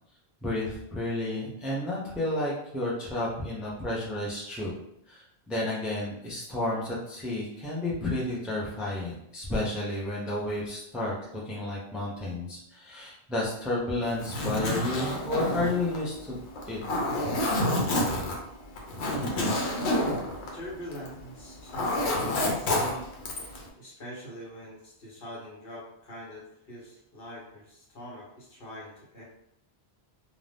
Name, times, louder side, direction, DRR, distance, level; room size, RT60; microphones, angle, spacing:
voice 1, 0.4-4.7 5.1-11.1 11.5-16.4 16.7-16.8, left 1 dB, ahead, -5 dB, 0.4 m, -31 dB
Zipper (clothing), 14.1-21.2 21.5-23.6, left 1 dB, 85° left, 0.9 m, -28 dB
voice 2, 20.5-23.1 23.8-29.2, equal, 60° left, -4 dB, 1.1 m, -43 dB
2.6 x 2.2 x 3.3 m, 0.77 s
omnidirectional pair, 1.1 m